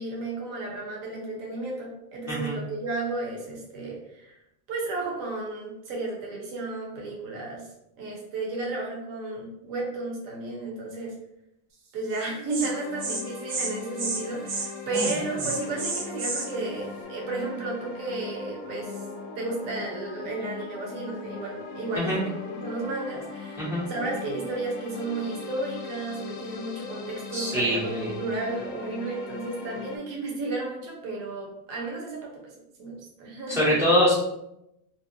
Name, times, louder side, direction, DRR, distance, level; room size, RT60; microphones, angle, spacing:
voice 1, 0.0-4.3 4.7-7.7 8.0-11.1 11.9-19.0 19.3-32.5 32.8-33.8, right 2 dB, 40° right, -2 dB, 0.8 m, -33 dB
Insect, 12.1-12.2 12.5-12.7 13.0-13.2 13.5-13.7 14.0-14.2 14.5-14.7 14.9-16.5, right 3 dB, 75° right, 0.9 m, -30 dB
sound 1, 12.6-30.0, left 5 dB, 50° left, 0.6 m, -39 dB
voice 2, 27.3-28.1 33.5-34.1, equal, 5° right, -7 dB, 0.6 m, -24 dB
2.6 x 2.1 x 2.6 m, 0.82 s
cardioid pair, 155°, 49 cm